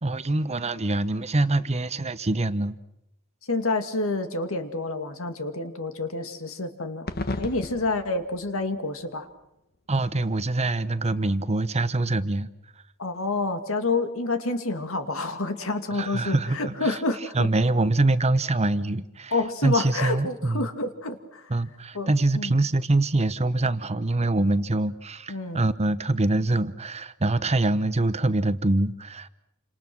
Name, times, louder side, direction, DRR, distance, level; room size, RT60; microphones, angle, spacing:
voice 1, 0.0-2.8 9.9-12.5 15.9-16.9 17.3-19.3 19.6-20.7 21.5-29.3, right 2 dB, 30° right, 13 dB, 1.0 m, -24 dB
voice 2, 3.5-7.1 7.4-9.3 13.0-17.5 19.3-21.5 21.9-22.6 25.3-25.6, left 3 dB, 65° left, 7 dB, 2.4 m, -28 dB
sound 1, 7.1-9.9, left 2 dB, 45° left, 1.4 m, -35 dB
29.0 x 27.0 x 6.2 m, 0.87 s
head